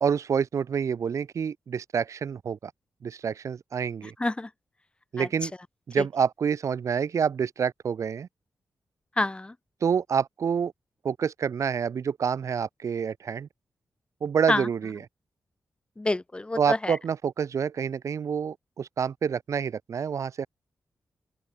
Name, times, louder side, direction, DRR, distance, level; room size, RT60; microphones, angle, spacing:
voice 1, 0.0-2.7 3.0-4.1 5.1-5.5 5.9-8.3 9.8-10.7 11.0-13.5 14.2-15.0 16.6-20.5, right 7 dB, 65° right, 0.6 m, -27 dB
voice 2, 9.2-9.5 14.5-14.7 16.0-17.0, left 2 dB, 20° left, 0.8 m, -27 dB
open air
wide cardioid pair, 100°, 6 cm